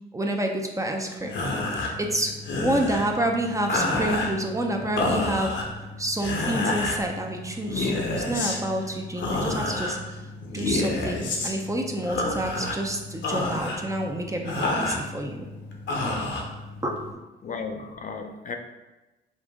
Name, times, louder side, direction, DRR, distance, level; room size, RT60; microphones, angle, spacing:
voice 1, 0.1-1.3 2.0-5.5 6.0-10.0 10.5-11.2 11.4-15.5 16.0-16.2 16.8-17.0 18.2-18.3, right 1 dB, 15° right, 2 dB, 0.6 m, -28 dB
sound 1, 1.2-17.1, left 2 dB, 65° left, 0.9 m, -30 dB
voice 2, 17.4-18.6, left 4 dB, 40° left, 4 dB, 0.5 m, -34 dB
5.2 x 2.5 x 3.6 m, 1.1 s
cardioid pair, 90°, 20 cm